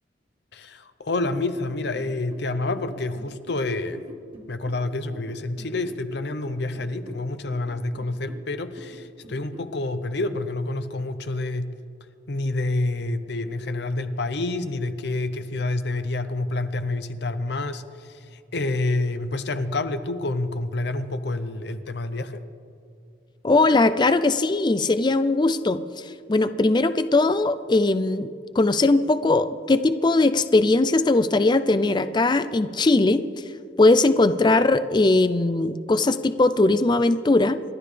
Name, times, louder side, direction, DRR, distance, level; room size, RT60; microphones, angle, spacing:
voice 1, 0.5-4.0 4.5-11.7 12.3-22.4, left 2 dB, 65° left, 10 dB, 0.8 m, -28 dB
sound 1, 1.5-9.8, equal, 30° right, 1.6 m, -46 dB
voice 2, 23.4-25.8 26.3-28.3 28.6-33.3 33.8-37.6, left 2 dB, 25° left, 12 dB, 0.4 m, -20 dB
29.0 x 12.0 x 3.4 m, 2.4 s
head